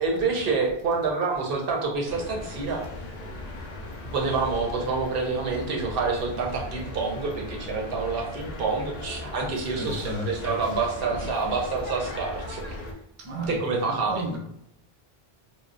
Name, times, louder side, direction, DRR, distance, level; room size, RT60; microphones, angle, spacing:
voice 1, 0.0-2.8 4.1-12.8 13.5-14.2, right 4 dB, 65° right, 0.8 m, -27 dB
sound 1, 2.0-12.9, left 2 dB, 55° left, 0.5 m, -38 dB
voice 2, 9.6-10.6 11.1-11.3 13.2-14.4, equal, 40° right, 0.4 m, -34 dB
3.0 x 2.0 x 2.5 m
omnidirectional pair, 1.0 m